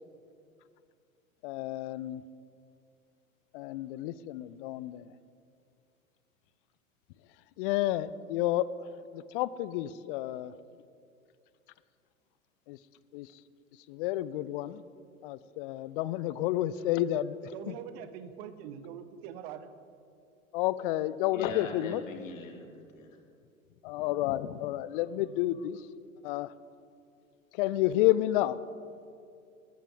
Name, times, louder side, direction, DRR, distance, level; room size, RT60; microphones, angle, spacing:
voice 1, 1.4-2.2 3.5-5.1 7.6-8.6 9.1-10.5 12.7-12.8 13.1-13.3 13.9-14.8 15.2-17.8 20.5-22.0 23.8-25.9 26.2-26.5 27.5-28.6, left 14 dB, 40° left, 0.5 m, -30 dB
voice 2, 17.4-19.7, right 9 dB, 45° right, 1.1 m, -43 dB
voice 3, 21.3-23.2, left 3 dB, 65° left, 2.6 m, -42 dB
19.5 x 14.0 x 3.7 m
figure-of-eight pair, 95°, 42 cm